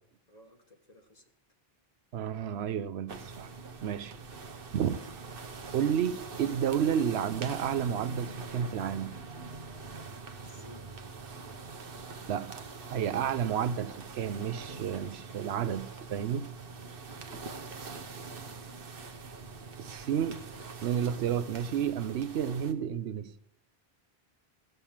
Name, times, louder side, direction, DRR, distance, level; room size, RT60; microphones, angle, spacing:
voice 1, 0.3-1.3 10.4-10.9 17.2-17.9, equal, 40° left, 1.4 m, -56 dB
voice 2, 2.1-3.5 3.8-4.2 4.7-5.0 5.7-9.2 12.3-12.6 12.9-16.5 19.8-20.4 20.8-23.3, right 8 dB, 90° right, 0.9 m, -31 dB
sound 1, 3.1-22.7, right 4 dB, 65° right, 1.1 m, -44 dB
16.5 x 6.7 x 7.2 m
omnidirectional pair, 1.0 m